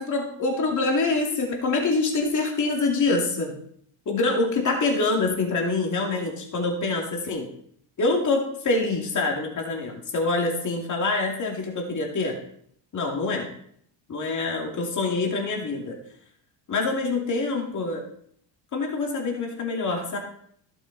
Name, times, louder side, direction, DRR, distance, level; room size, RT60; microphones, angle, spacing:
voice 1, 0.0-3.5 4.1-7.5 8.0-12.4 12.9-13.5 14.1-16.0 16.7-18.0 18.7-20.2, left 3 dB, 40° left, 0 dB, 2.6 m, -25 dB
12.5 x 7.5 x 4.2 m, 0.67 s
supercardioid pair, 90°, 47 cm